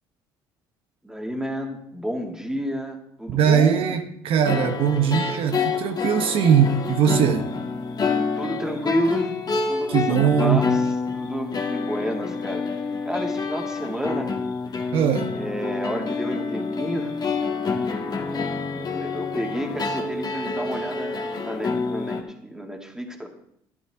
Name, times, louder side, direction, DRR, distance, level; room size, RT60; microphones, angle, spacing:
voice 1, 1.0-3.9 8.4-9.3 9.7-10.8 11.1-14.4 15.4-17.2 18.7-21.2 21.4-23.3, equal, 5° right, 2 dB, 2.3 m, -30 dB
voice 2, 3.3-7.5 9.9-10.6 14.9-15.3, right 7 dB, 65° right, 6 dB, 1.0 m, -20 dB
sound 1, 4.4-22.2, left 4 dB, 45° left, 1.9 m, -27 dB
12.5 x 10.5 x 3.7 m, 0.73 s
supercardioid pair, 75°, 10 cm